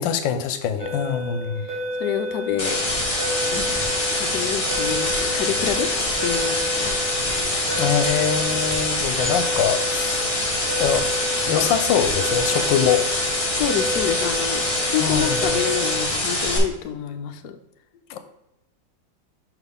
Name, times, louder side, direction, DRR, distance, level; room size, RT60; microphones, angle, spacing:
voice 1, 0.0-1.6 7.7-10.3 10.8-11.1 11.5-13.1 15.0-15.6 18.1-18.2, left 8 dB, 85° left, 9 dB, 1.3 m, -23 dB
sound 1, 0.8-16.0, equal, 75° right, 2.3 m, -31 dB
voice 2, 1.7-2.8 3.5-3.8 4.1-5.9 6.2-6.9 13.5-17.6, left 9 dB, 70° left, 6 dB, 1.1 m, -28 dB
sound 2, 2.6-16.6, left 1 dB, 20° left, 1.2 m, -24 dB
5.9 x 5.5 x 3.5 m, 0.91 s
omnidirectional pair, 2.0 m